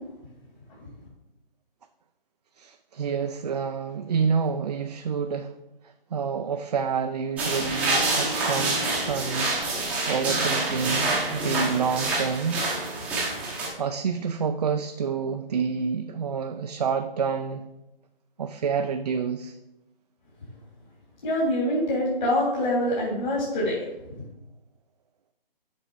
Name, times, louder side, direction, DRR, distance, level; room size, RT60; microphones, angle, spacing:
voice 1, 2.6-5.5 5.8-12.6 13.8-17.7 18.4-19.6, right 6 dB, 45° right, 7 dB, 0.4 m, -28 dB
sound 1, 7.4-13.7, right 2 dB, 5° right, 0.8 m, -27 dB
voice 2, 21.2-23.9, left 1 dB, 50° left, -6 dB, 3.1 m, -25 dB
7.9 x 5.2 x 4.9 m, 0.94 s
figure-of-eight pair, 150°, 29 cm